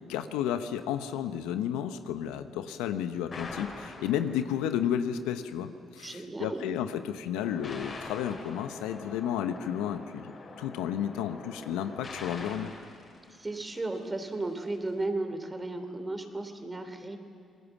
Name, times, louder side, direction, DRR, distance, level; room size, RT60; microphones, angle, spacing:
voice 1, 0.0-12.7, left 9 dB, 85° left, 9 dB, 1.0 m, -32 dB
sound 1, 3.3-4.7 7.4-14.0, left 3 dB, 50° left, 5.4 m, -44 dB
voice 2, 6.0-6.7 13.4-17.2, right 2 dB, 25° right, 7 dB, 3.2 m, -34 dB
26.5 x 20.0 x 7.3 m, 2.3 s
hypercardioid pair, 50°, 0 cm